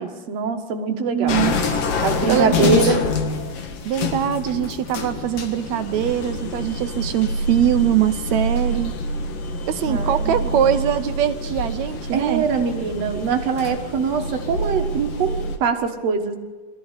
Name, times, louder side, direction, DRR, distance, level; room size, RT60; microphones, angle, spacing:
voice 1, 0.0-1.4 2.0-3.1 9.8-10.8 12.1-16.4, right 5 dB, 55° right, 4 dB, 2.3 m, -23 dB
voice 2, 1.1-1.6 2.3-2.9 3.8-9.0 9.7-12.5, right 10 dB, 75° right, 9 dB, 1.7 m, -22 dB
sound 1, 1.3-15.6, left 2 dB, 75° left, 3.3 m, -26 dB
22.0 x 15.0 x 8.2 m, 1.4 s
omnidirectional pair, 3.8 m